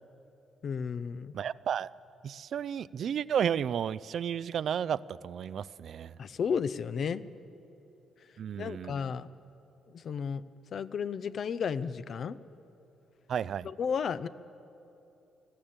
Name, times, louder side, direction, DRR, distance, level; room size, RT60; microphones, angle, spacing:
voice 1, 0.6-1.3 6.2-7.2 8.6-9.3 9.9-10.4 10.7-12.4 13.6-14.3, left 6 dB, 55° left, 15 dB, 0.6 m, -33 dB
voice 2, 1.3-1.9 2.2-6.1 8.4-8.9 13.3-13.7, right 8 dB, 60° right, 17 dB, 0.4 m, -32 dB
20.5 x 14.5 x 8.8 m, 2.8 s
cardioid pair, 90°, 0 cm